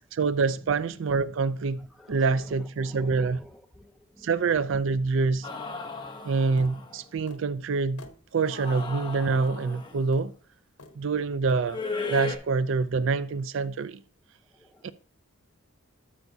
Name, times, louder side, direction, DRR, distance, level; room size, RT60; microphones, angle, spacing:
voice 1, 0.1-3.4 4.2-5.5 6.2-8.0 8.3-10.3 11.0-11.8 12.1-14.0 14.8-14.9, right 4 dB, 60° right, 0.4 m, -26 dB
voice 2, 1.9-4.3 14.5-14.9, equal, ahead, 0.7 m, -50 dB
sound 1, 5.4-7.0 8.4-10.1 11.7-12.4, left 3 dB, 20° left, 1.1 m, -36 dB
sound 2, 6.6-6.8 7.3-7.5 8.0-8.2 8.8-8.9 9.4-9.6 10.1-10.3 10.8-11.0 11.5-11.7 12.1-12.3, left 2 dB, 90° left, 1.1 m, -48 dB
12.5 x 5.8 x 2.7 m
head